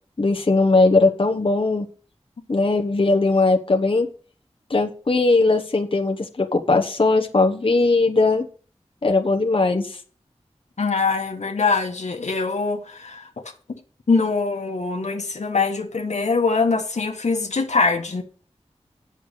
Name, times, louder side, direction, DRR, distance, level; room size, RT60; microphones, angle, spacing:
voice 1, 0.2-1.9 2.5-4.1 4.7-8.4 9.0-10.0, left 3 dB, 50° left, 1.2 m, -19 dB
voice 2, 10.8-13.4 14.1-18.2, left 4 dB, 90° left, 1.4 m, -23 dB
8.6 x 6.7 x 6.6 m
wide cardioid pair, 60°, 11 cm